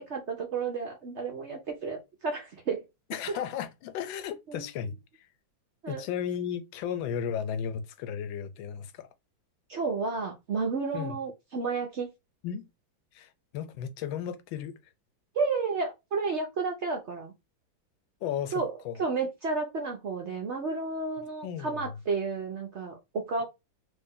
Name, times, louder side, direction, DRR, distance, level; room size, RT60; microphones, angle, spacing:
voice 1, 0.0-2.8 4.5-4.7 5.8-6.0 9.7-12.1 15.3-17.3 18.5-23.4, right 4 dB, 70° right, 0.6 m, -32 dB
voice 2, 3.1-5.3 5.9-9.1 10.9-11.2 12.4-12.7 13.1-14.8 18.2-19.0 21.4-21.8, left 8 dB, 85° left, 1.3 m, -35 dB
3.4 x 2.6 x 3.5 m
omnidirectional pair, 2.1 m